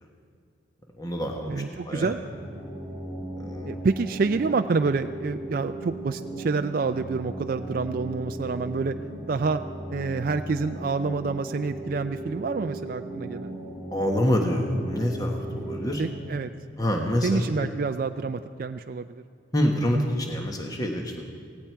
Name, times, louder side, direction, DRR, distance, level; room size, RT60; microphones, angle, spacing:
voice 1, 1.0-2.1 3.4-3.8 13.9-16.0 16.8-17.7 19.5-21.2, equal, 20° left, 2 dB, 1.3 m, -26 dB
voice 2, 1.5-2.2 3.7-9.0 9.3-9.6 9.9-13.5 16.0-16.5 17.2-19.1, right 4 dB, 45° right, 8 dB, 0.3 m, -27 dB
sound 1, 2.2-16.2, right 1 dB, 5° left, 4.4 m, -37 dB
17.5 x 17.0 x 4.6 m, 2.3 s
head